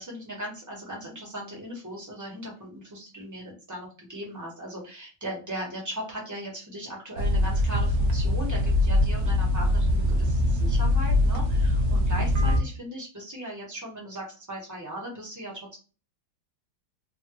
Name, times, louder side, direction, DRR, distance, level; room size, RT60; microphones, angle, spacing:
voice 1, 0.0-15.8, right 1 dB, 20° right, -3 dB, 0.5 m, -38 dB
sound 1, 7.2-12.6, left 1 dB, 70° right, 0.9 m, -23 dB
3.3 x 2.2 x 2.8 m, 0.35 s
omnidirectional pair, 2.1 m